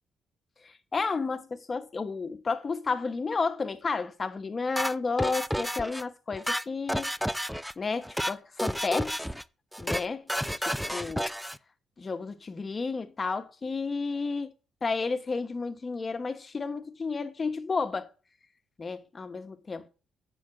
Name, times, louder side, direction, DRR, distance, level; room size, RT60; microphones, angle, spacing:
voice 1, 0.6-7.1 7.8-9.2 9.8-10.3 10.7-11.3 12.0-14.5 14.8-18.1 18.8-19.9, left 4 dB, 35° left, 1.1 m, -32 dB
sound 1, 4.8-6.0 6.3-7.7 8.0-8.3 8.6-9.4 9.7-10.0 10.3-11.6, equal, ahead, 0.4 m, -31 dB
7.6 x 5.7 x 7.4 m
cardioid pair, 90°, 0 cm